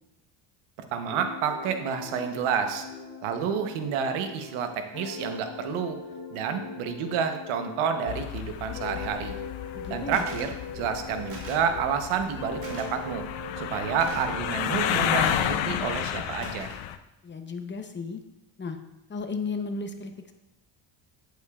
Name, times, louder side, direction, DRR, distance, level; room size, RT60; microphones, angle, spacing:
voice 1, 0.9-2.8 3.2-6.0 6.3-9.4 9.9-13.3 13.6-16.7, right 7 dB, 80° right, 7 dB, 1.0 m, -29 dB
sound 1, 1.1-8.3 8.7-12.1 12.4-16.0, left 4 dB, 45° left, 1.5 m, -40 dB
sound 2, 8.1-17.0, left 11 dB, 70° left, 0.7 m, -32 dB
voice 2, 9.7-10.2 17.2-18.2 18.6-18.8 19.1-20.3, left 4 dB, 25° left, 6 dB, 0.8 m, -34 dB
sound 3, 10.1-10.5 11.3-11.7 12.6-12.9 14.0-14.4 15.2-15.7 16.4-16.9, right 2 dB, 40° right, 2.3 m, -43 dB
8.6 x 8.0 x 2.4 m, 0.96 s
cardioid pair, 95°, 49 cm